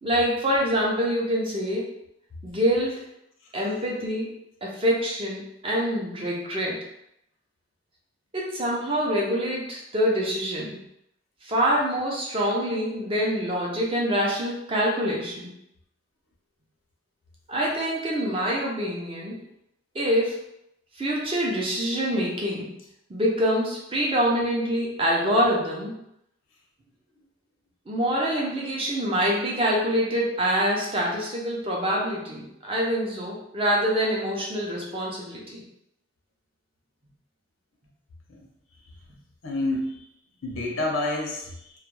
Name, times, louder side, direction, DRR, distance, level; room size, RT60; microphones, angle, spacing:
voice 1, 0.0-1.9 2.4-3.1 3.5-4.4 4.6-6.8 8.3-10.8 11.4-15.5 17.5-19.4 19.9-20.4 21.0-22.8 23.1-25.9 27.9-35.6, equal, 25° right, -3 dB, 0.5 m, -25 dB
voice 2, 39.4-40.0 40.4-41.7, left 2 dB, 90° left, -1 dB, 0.7 m, -28 dB
2.3 x 2.1 x 3.0 m, 0.79 s
head